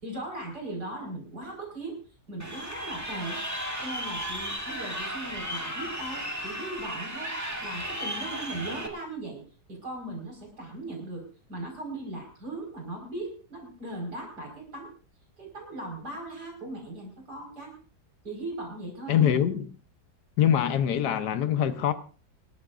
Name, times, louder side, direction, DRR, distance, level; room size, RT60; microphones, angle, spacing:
voice 1, 0.0-2.0 2.3-3.4 3.8-7.3 7.6-9.4 9.7-14.9 15.4-17.7 18.2-19.3, right 2 dB, 70° right, 5.8 m, -38 dB
Crowd, 2.4-8.9, equal, 10° right, 2.2 m, -35 dB
voice 2, 19.1-19.7 20.4-21.9, left 9 dB, 80° left, 1.6 m, -23 dB
26.5 x 13.0 x 2.6 m
omnidirectional pair, 1.8 m